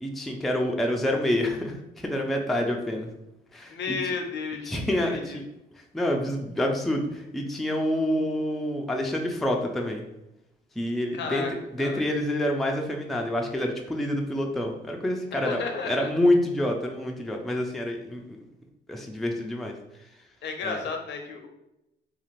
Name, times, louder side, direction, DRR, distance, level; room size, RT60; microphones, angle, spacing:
voice 1, 0.0-3.1 3.5-3.7 4.7-5.4 5.9-10.0 10.8-11.4 11.8-15.6 15.8-18.2 18.9-19.7 20.6-20.8, left 1 dB, ahead, 1 dB, 0.3 m, -27 dB
voice 2, 3.7-4.8 5.0-5.4 11.1-11.5 11.8-12.0 15.3-16.1 20.4-21.5, left 5 dB, 65° left, 4 dB, 0.5 m, -33 dB
2.4 x 2.4 x 3.0 m, 0.87 s
cardioid pair, 90°, 20 cm